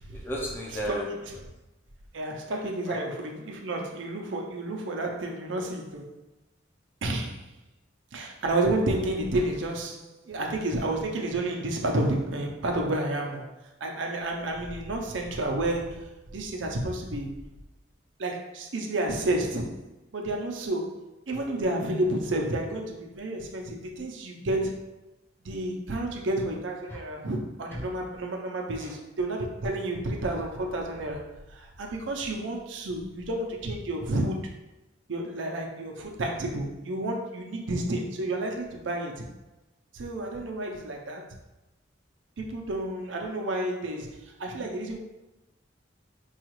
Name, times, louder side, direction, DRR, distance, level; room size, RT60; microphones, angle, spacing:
voice 1, 0.1-1.5 2.4-3.1 26.9-27.0 27.7-27.9 28.8-29.0, equal, 10° left, -4 dB, 0.6 m, -35 dB
voice 2, 2.1-6.1 7.0-7.4 8.1-13.5 13.8-17.3 18.2-19.8 20.1-24.9 25.4-34.4 35.1-39.3 39.9-41.3 42.4-45.0, right 1 dB, 75° right, 2 dB, 0.6 m, -30 dB
4.7 x 2.4 x 3.0 m, 1.0 s
head